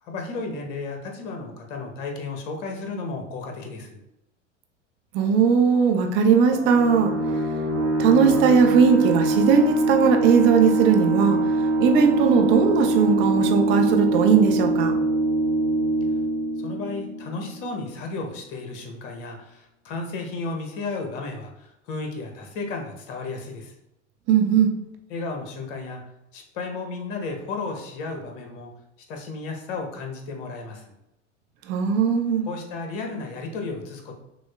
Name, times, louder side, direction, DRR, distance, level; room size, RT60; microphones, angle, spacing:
voice 1, 0.0-4.0 16.6-23.7 25.1-26.0 26.3-28.7 29.1-30.8 32.5-34.1, left 3 dB, 45° left, 2 dB, 0.9 m, -33 dB
voice 2, 5.1-7.1 8.0-11.4 11.8-14.9 24.3-24.7 31.7-32.4, right 6 dB, 30° right, 4 dB, 0.4 m, -19 dB
sound 1, 6.5-17.8, right 2 dB, 85° right, 0.8 m, -23 dB
6.0 x 2.0 x 2.3 m, 0.86 s
figure-of-eight pair, 85°, 36 cm